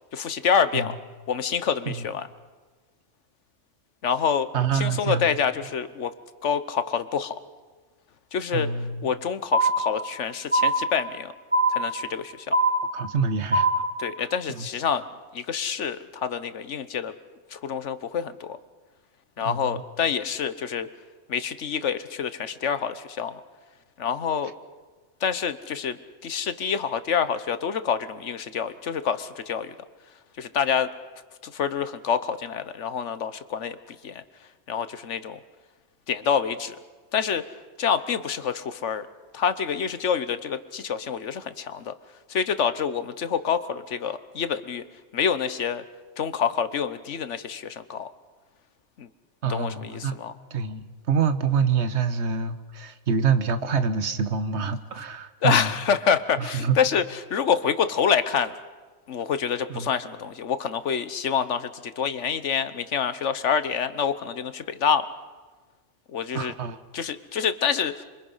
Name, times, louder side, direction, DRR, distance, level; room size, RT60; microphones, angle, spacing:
voice 1, 0.1-1.0 1.3-2.3 4.0-6.1 6.4-7.4 8.3-8.7 9.0-11.3 11.7-12.6 14.0-15.0 15.3-17.1 17.5-18.6 19.4-20.9 21.3-23.4 24.0-24.5 25.2-29.7 30.4-30.9 31.4-34.2 34.7-35.4 36.1-36.8 37.1-37.4 37.8-39.1 39.3-41.9 42.3-44.8 45.1-45.8 46.2-48.1 49.0-49.1 49.5-50.3 55.4-58.5 59.1-65.1 66.1-66.5 66.9-68.0, left 7 dB, 75° left, 12 dB, 1.3 m, -27 dB
voice 2, 4.5-5.3 8.5-8.9 12.9-13.7 14.6-14.7 19.4-19.8 49.4-50.1 50.5-55.7 56.5-56.8 59.7-59.9 66.3-66.8, right 6 dB, 65° right, 11 dB, 1.4 m, -26 dB
sound 1, 9.5-10.2 10.5-11.2 11.5-12.2 12.5-13.2 13.5-14.2, right 1 dB, 10° right, 1.7 m, -23 dB
27.5 x 24.0 x 5.6 m, 1.3 s
omnidirectional pair, 1.2 m